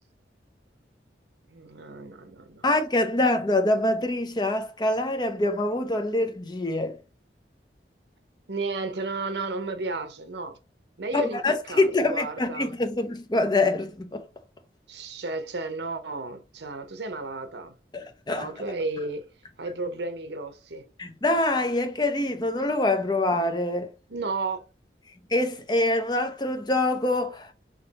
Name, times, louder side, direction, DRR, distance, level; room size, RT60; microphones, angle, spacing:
voice 1, 1.5-2.7 8.5-10.6 11.0-11.4 11.7-12.7 14.9-17.8 18.3-19.3 19.6-20.9 24.1-24.6, right 3 dB, 75° right, 0.8 m, -33 dB
voice 2, 2.6-7.0 11.1-14.3 17.9-18.5 21.0-23.9 25.3-27.5, left 2 dB, 25° left, 0.6 m, -25 dB
5.0 x 3.0 x 2.9 m
head